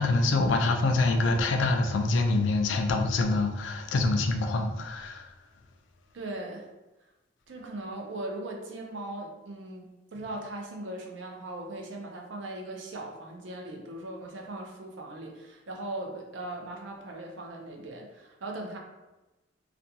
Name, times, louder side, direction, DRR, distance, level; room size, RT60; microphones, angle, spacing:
voice 1, 0.0-5.3, left 2 dB, 80° left, 4 dB, 0.4 m, -25 dB
voice 2, 6.1-6.7 7.5-18.8, right 2 dB, 80° right, 1 dB, 0.5 m, -39 dB
2.5 x 2.2 x 2.7 m, 1.1 s
head